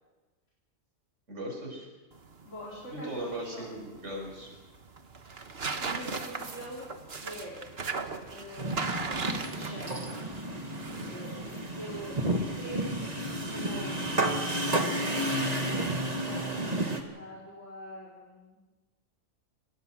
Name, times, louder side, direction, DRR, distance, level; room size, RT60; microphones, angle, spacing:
voice 1, 1.3-1.9 2.9-4.5 10.9-11.1, right 1 dB, 85° right, 0 dB, 6.4 m, -38 dB
sound 1, 2.1-14.3, right 4 dB, 55° right, 1.6 m, -39 dB
voice 2, 2.4-3.7 5.8-6.9 7.2-7.5 8.3-10.2 11.0-14.0 15.1-18.6, equal, 80° left, -5 dB, 4.7 m, -45 dB
sound 2, 8.6-17.0, right 1 dB, 35° right, 2.1 m, -31 dB
25.0 x 19.5 x 6.3 m, 1.2 s
omnidirectional pair, 1.2 m